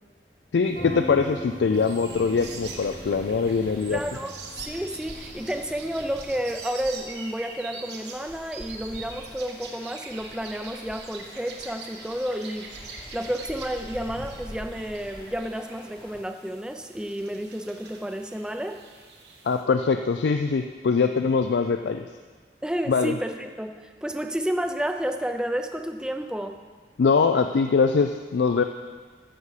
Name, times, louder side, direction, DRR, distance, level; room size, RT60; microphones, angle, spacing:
voice 1, 0.5-4.0 19.4-22.0 22.9-23.1 27.0-28.6, left 5 dB, 80° left, 7 dB, 0.4 m, -22 dB
sound 1, 0.7-6.6, equal, 50° left, 1.7 m, -40 dB
sound 2, 1.7-19.6, right 4 dB, 75° right, 1.3 m, -44 dB
sound 3, 2.1-16.2, left 1 dB, 25° left, 1.0 m, -46 dB
voice 2, 3.9-18.8 22.6-26.6, equal, 5° right, 6 dB, 0.5 m, -31 dB
13.5 x 6.7 x 4.8 m, 1.5 s
head